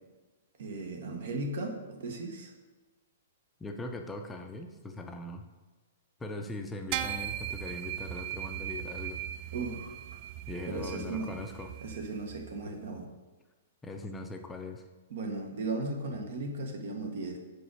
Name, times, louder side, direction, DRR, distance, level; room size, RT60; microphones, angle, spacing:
voice 1, 0.6-2.5 9.5-10.0 10.7-11.3 11.8-13.1 15.1-17.4, right 2 dB, 70° right, 3 dB, 1.3 m, -36 dB
voice 2, 3.6-5.4 6.2-9.2 10.5-11.7 13.8-14.8, left 2 dB, 10° left, 4 dB, 0.6 m, -40 dB
sound 1, 6.9-12.5, right 11 dB, 40° right, 0.3 m, -38 dB
5.0 x 4.9 x 6.3 m, 1.2 s
hypercardioid pair, 140°, 0 cm